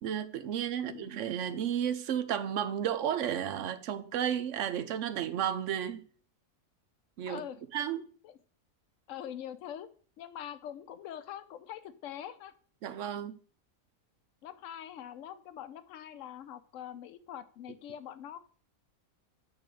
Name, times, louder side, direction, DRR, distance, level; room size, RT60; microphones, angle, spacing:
voice 1, 0.0-6.1 7.2-7.4 7.7-8.1 12.8-13.4, right 9 dB, 65° right, 0.9 m, -33 dB
voice 2, 0.8-1.1 7.3-7.6 8.2-8.4 9.1-9.9 10.2-12.5 14.4-18.4, left 10 dB, 65° left, 1.0 m, -43 dB
9.2 x 3.4 x 6.3 m
omnidirectional pair, 1.5 m